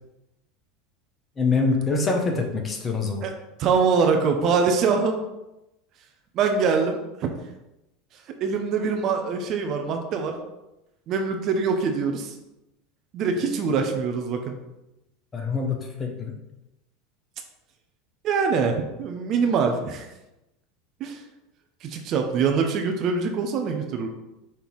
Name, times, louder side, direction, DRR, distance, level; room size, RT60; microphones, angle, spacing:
voice 1, 1.4-3.2 15.3-16.4, left 4 dB, 30° left, 2 dB, 1.4 m, -25 dB
voice 2, 3.6-5.2 6.3-7.4 8.4-10.3 11.1-12.3 13.1-14.5 18.2-20.1 21.0-21.2 21.8-24.1, right 5 dB, 50° right, 4 dB, 0.9 m, -24 dB
5.9 x 3.4 x 4.7 m, 0.93 s
hypercardioid pair, 85°, 0 cm